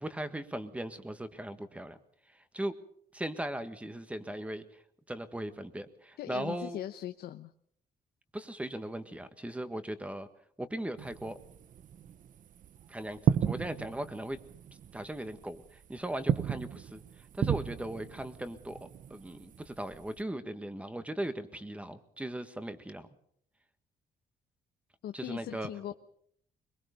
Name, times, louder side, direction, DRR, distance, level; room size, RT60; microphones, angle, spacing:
voice 1, 0.0-2.0 2.3-2.8 3.1-4.6 5.1-6.8 8.3-10.3 10.6-11.4 12.9-14.4 14.9-18.8 19.1-23.1 25.1-25.7, right 1 dB, 10° right, 10 dB, 1.6 m, -38 dB
voice 2, 6.2-7.5 25.0-25.9, left 12 dB, 80° left, 8 dB, 0.9 m, -40 dB
sound 1, 11.0-20.2, right 9 dB, 55° right, 0.8 m, -35 dB
22.5 x 22.0 x 5.3 m, 0.65 s
cardioid pair, 130°, 16 cm